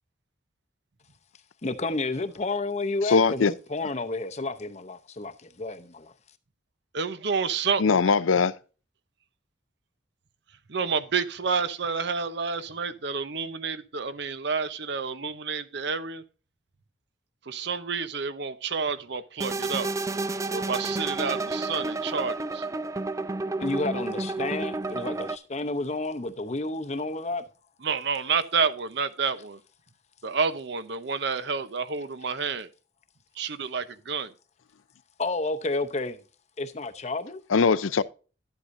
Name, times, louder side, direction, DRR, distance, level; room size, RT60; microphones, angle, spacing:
voice 1, 1.6-6.1 23.6-27.4 35.2-36.2 36.6-37.4, left 2 dB, 35° left, 0.7 m, -31 dB
voice 2, 3.1-3.5 7.8-8.5 37.5-38.0, left 5 dB, 90° left, 0.5 m, -21 dB
voice 3, 6.9-8.0 10.7-16.2 17.5-19.9 20.5-22.7 27.8-29.6 30.2-32.7 33.4-34.3, right 5 dB, 60° right, 0.8 m, -29 dB
sound 1, 19.4-25.4, right 3 dB, 15° right, 0.3 m, -30 dB
11.5 x 8.2 x 2.6 m
head